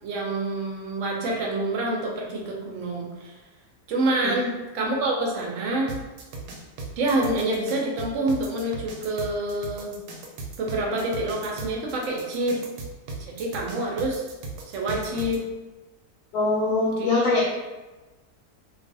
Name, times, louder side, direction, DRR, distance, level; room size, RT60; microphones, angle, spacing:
voice 1, 0.0-3.3 3.9-5.9 7.0-9.9 10.6-12.6 13.2-14.3 14.7-15.4 17.0-17.2, right 2 dB, 65° right, -1 dB, 0.8 m, -27 dB
sound 1, 5.9-15.4, right 3 dB, 85° right, 1.1 m, -37 dB
voice 2, 16.3-17.4, left 3 dB, 80° left, -4 dB, 1.1 m, -22 dB
2.6 x 2.4 x 2.6 m, 1.2 s
omnidirectional pair, 1.6 m